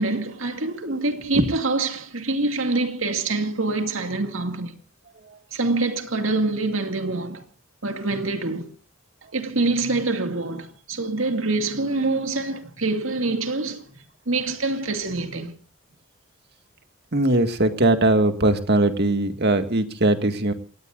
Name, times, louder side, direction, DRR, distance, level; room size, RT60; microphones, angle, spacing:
voice 1, 0.0-4.8 5.5-7.4 7.8-8.7 9.3-15.5, right 3 dB, 75° right, 2.4 m, -25 dB
voice 2, 17.1-20.5, right 1 dB, 55° right, 2.0 m, -20 dB
28.0 x 18.0 x 2.6 m
head